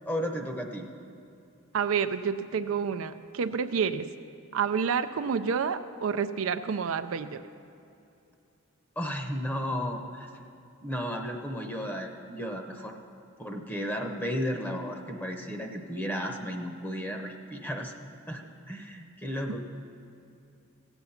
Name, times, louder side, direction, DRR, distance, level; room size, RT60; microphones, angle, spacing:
voice 1, 0.1-0.9 9.0-10.3 10.8-13.0 13.4-17.9 18.3-18.4 18.7-19.6, equal, 10° left, 3 dB, 0.8 m, -34 dB
voice 2, 1.7-4.1 4.5-7.4 19.5-19.6, right 6 dB, 80° right, 9 dB, 0.4 m, -29 dB
16.0 x 8.1 x 5.7 m, 2.7 s
head